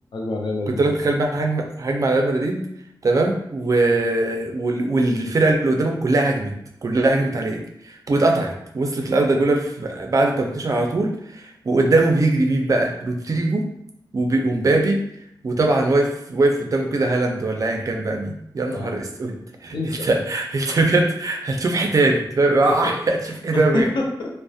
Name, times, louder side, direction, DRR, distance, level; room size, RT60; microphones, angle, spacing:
voice 1, 0.1-0.9 18.7-18.9 19.7-20.1 22.6-22.9 23.5-24.4, left 2 dB, 75° left, 0 dB, 0.5 m, -27 dB
voice 2, 0.7-2.7 3.0-6.5 6.8-13.7 14.1-15.0 15.4-19.3 19.6-23.9, right 2 dB, 45° right, 2 dB, 0.4 m, -21 dB
2.3 x 2.0 x 2.6 m, 0.73 s
wide cardioid pair, 115°, 8 cm